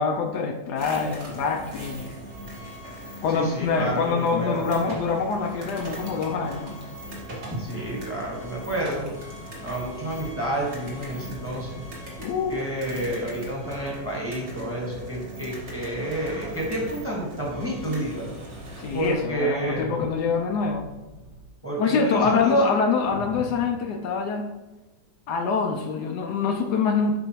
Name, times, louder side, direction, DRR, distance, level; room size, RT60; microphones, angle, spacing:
voice 1, 0.0-2.1 3.2-6.7 12.2-12.6 18.8-20.9 21.8-24.5 25.3-27.2, left 5 dB, 75° left, 3 dB, 1.1 m, -25 dB
sound 1, 0.7-19.1, equal, 40° right, 1.7 m, -40 dB
voice 2, 3.3-4.6 7.5-9.1 9.6-11.8 12.5-18.3 18.9-19.9 21.6-22.7, right 1 dB, 10° right, -3 dB, 1.5 m, -30 dB
sound 2, 7.7-21.4, equal, 90° right, 2.6 m, -48 dB
7.7 x 5.3 x 3.0 m, 1.1 s
omnidirectional pair, 1.9 m